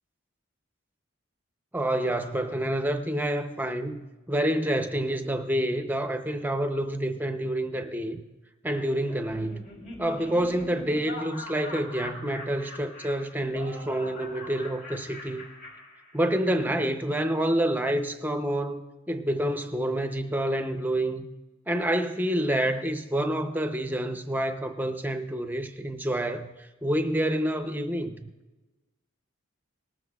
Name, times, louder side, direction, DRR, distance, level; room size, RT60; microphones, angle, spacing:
voice 1, 1.7-8.2 8.6-9.7 10.0-15.5 16.1-18.8 19.1-21.2 21.7-28.3, right 1 dB, 10° right, 7 dB, 0.6 m, -28 dB
Laughter, 9.1-16.6, left 1 dB, 40° left, 2.9 m, -42 dB
19.5 x 12.5 x 2.3 m, 1.2 s
head